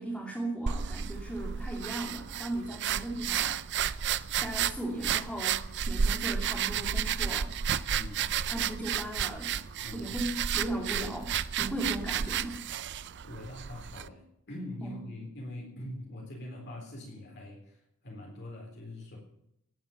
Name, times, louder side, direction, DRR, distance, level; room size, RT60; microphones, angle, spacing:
voice 1, 0.0-3.6 4.4-5.6 5.9-7.5 8.5-9.6 9.9-12.7 14.8-15.0, right 1 dB, 5° left, -3 dB, 2.8 m, -37 dB
sound 1, 0.7-14.1, right 8 dB, 50° right, 0.5 m, -32 dB
voice 2, 7.9-8.3 9.8-10.1 13.2-19.2, left 1 dB, 50° left, -1 dB, 4.0 m, -43 dB
18.0 x 9.2 x 7.2 m, 0.78 s
head